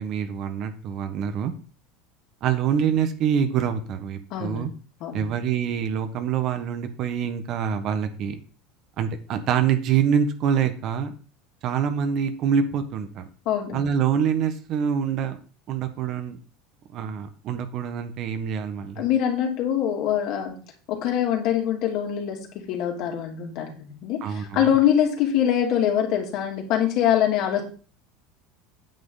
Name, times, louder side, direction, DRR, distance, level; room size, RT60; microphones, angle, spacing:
voice 1, 0.0-1.5 2.4-4.7 5.1-8.4 9.0-11.1 11.6-13.2 13.7-15.4 15.7-16.4 16.9-19.0 24.2-24.7, right 8 dB, 45° right, 8 dB, 1.4 m, -25 dB
voice 2, 4.3-4.7 5.0-5.3 13.4-13.9 19.0-20.5 20.9-27.6, left 10 dB, 55° left, 2 dB, 2.9 m, -24 dB
9.1 x 7.9 x 4.1 m, 0.38 s
supercardioid pair, 140°, 0 cm